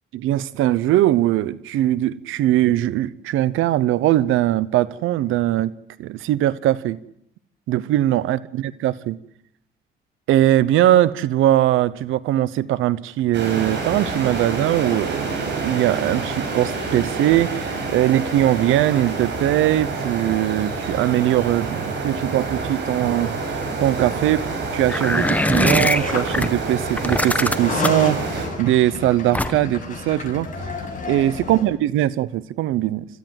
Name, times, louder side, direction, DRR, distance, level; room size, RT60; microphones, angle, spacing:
voice 1, 0.1-5.7 6.0-7.0 7.7-9.2 10.3-23.3 23.8-30.5 31.1-33.1, right 14 dB, 90° right, 0.8 m, -20 dB
sound 1, 13.3-28.5, right 3 dB, 65° right, 6.9 m, -28 dB
sound 2, 24.9-26.5 27.0-28.1 29.3-29.8, left 1 dB, 5° left, 1.2 m, -21 dB
sound 3, 25.1-26.5 27.4-31.6, left 3 dB, 40° left, 6.9 m, -31 dB
27.5 x 13.5 x 7.7 m
cardioid pair, 90°, 20 cm